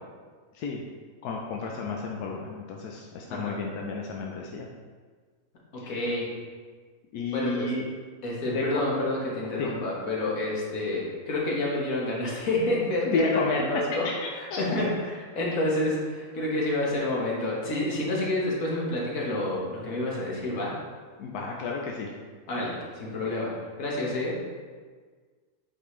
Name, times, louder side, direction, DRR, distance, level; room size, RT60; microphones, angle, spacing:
voice 1, 1.2-4.7 5.8-6.1 7.1-7.8 8.4-8.8 9.6-9.7 13.1-13.6 14.0-14.1 21.2-22.1, left 4 dB, 90° left, -1 dB, 1.2 m, -31 dB
voice 2, 5.7-6.3 7.3-7.7 8.2-14.1 14.3-20.7 22.5-23.5 23.8-24.4, left 1 dB, 65° left, -4 dB, 1.7 m, -29 dB
8.7 x 4.2 x 3.2 m, 1.5 s
omnidirectional pair, 1.6 m